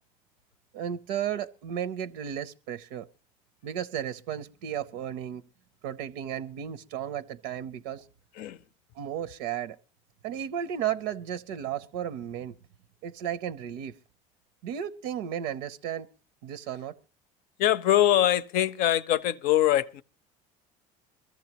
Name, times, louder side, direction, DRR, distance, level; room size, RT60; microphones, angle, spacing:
voice 1, 0.7-3.1 3.6-5.4 5.8-8.1 8.9-9.8 10.2-12.6 13.0-14.0 14.6-16.1 16.4-16.9, right 9 dB, 85° right, 0.6 m, -34 dB
voice 2, 17.6-20.0, left 12 dB, 65° left, 0.6 m, -23 dB
22.5 x 14.0 x 2.9 m
supercardioid pair, 110°, 16 cm